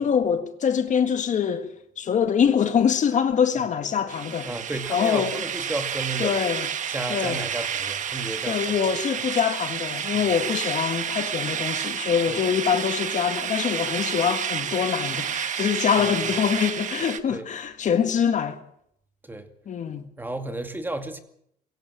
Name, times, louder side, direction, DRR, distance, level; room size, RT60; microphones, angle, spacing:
voice 1, 0.0-1.7 2.0-4.5 4.9-5.4 6.2-6.7 7.1-7.4 8.5-18.6 19.7-20.1, left 7 dB, 45° left, 1.8 m, -24 dB
sound 1, 4.1-17.2, right 8 dB, 45° right, 1.4 m, -30 dB
voice 2, 4.4-6.3 6.9-8.6 10.1-10.3 12.3-12.4 17.3-17.5 19.2-19.5 20.2-21.2, right 2 dB, 10° right, 2.2 m, -32 dB
22.5 x 16.0 x 7.4 m
cardioid pair, 110°, 17 cm